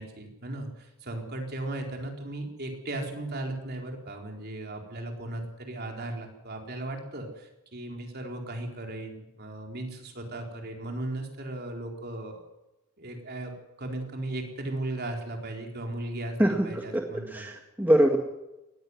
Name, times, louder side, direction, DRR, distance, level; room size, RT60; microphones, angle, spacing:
voice 1, 0.0-12.4 13.0-17.4, right 1 dB, 45° right, 2 dB, 4.2 m, -36 dB
voice 2, 16.4-18.2, equal, 10° right, 2 dB, 1.8 m, -24 dB
19.0 x 15.5 x 9.7 m, 0.95 s
head